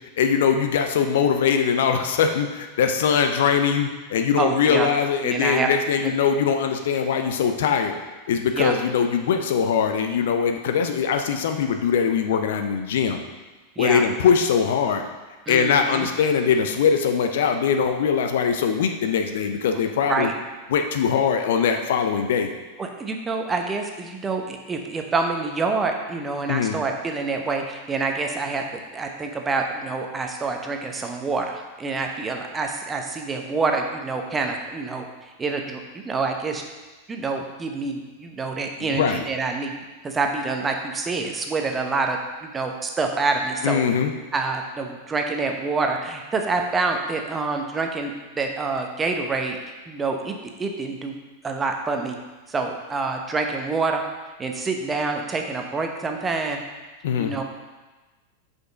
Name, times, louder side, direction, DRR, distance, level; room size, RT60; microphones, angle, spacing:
voice 1, 0.2-8.0 8.3-13.2 13.8-15.0 15.5-20.3 20.7-22.5 26.5-26.8 38.8-39.2 43.6-44.1 57.0-57.3, left 7 dB, 55° left, 6 dB, 0.6 m, -21 dB
voice 2, 4.4-4.9 5.2-5.7 6.0-6.1 8.5-8.8 13.8-14.0 15.5-16.1 19.7-19.8 20.1-20.3 22.8-28.6 28.9-36.6 37.1-39.7 40.0-43.8 44.3-49.6 49.9-51.1 51.4-52.2 52.5-54.0 54.4-56.6 57.2-57.4, right 3 dB, 15° right, 3 dB, 0.9 m, -27 dB
6.0 x 5.3 x 5.1 m, 1.2 s
figure-of-eight pair, 90°, 0 cm